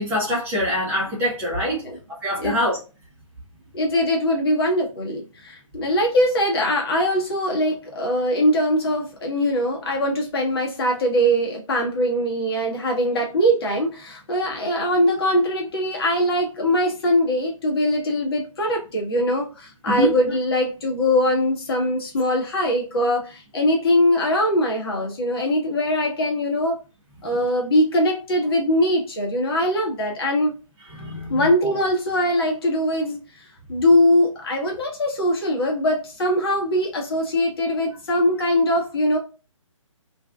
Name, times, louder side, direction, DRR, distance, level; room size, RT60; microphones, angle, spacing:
voice 1, 0.0-1.8 2.2-2.8 19.9-20.1 31.0-31.4, equal, 10° right, 0.7 m, -24 dB
voice 2, 3.7-26.8 27.2-30.5 31.3-33.2 33.7-39.2, left 1 dB, 45° left, 0.9 m, -22 dB
2.5 x 2.2 x 2.3 m
figure-of-eight pair, 140°, 17 cm